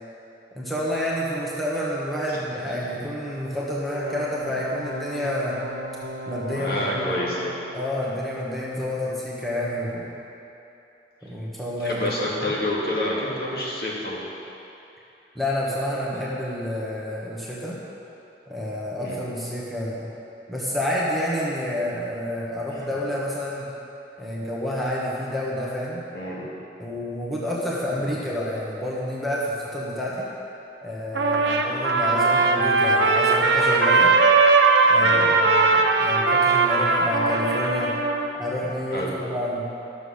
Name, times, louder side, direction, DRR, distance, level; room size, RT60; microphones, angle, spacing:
voice 1, 0.5-5.6 6.3-7.1 7.7-10.1 11.2-12.0 15.3-17.8 18.5-20.1 20.5-23.7 24.2-26.0 26.8-30.3 30.8-34.1 34.9-37.9 38.4-39.7, left 1 dB, ahead, -7 dB, 1.3 m, -29 dB
sound 1, 3.9-7.8, right 1 dB, 65° right, 1.3 m, -36 dB
voice 2, 6.5-7.5 11.8-14.2 19.0-19.2 26.1-26.4 35.0-35.2 38.9-39.2, left 1 dB, 55° left, -5 dB, 2.3 m, -28 dB
Trumpet, 31.1-38.3, right 3 dB, 80° right, 1.0 m, -19 dB
12.5 x 7.2 x 6.5 m, 2.9 s
head